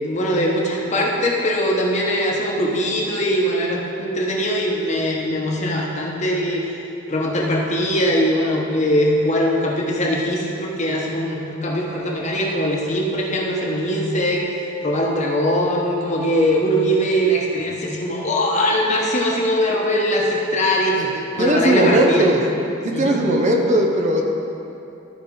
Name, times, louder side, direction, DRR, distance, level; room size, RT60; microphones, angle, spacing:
voice 1, 0.0-6.7 7.1-14.4 14.8-22.3 22.9-23.2, equal, 35° left, -2 dB, 1.2 m, -21 dB
voice 2, 21.0-22.4 22.8-24.2, right 1 dB, 40° right, 1 dB, 0.8 m, -18 dB
13.0 x 4.7 x 4.8 m, 2.8 s
head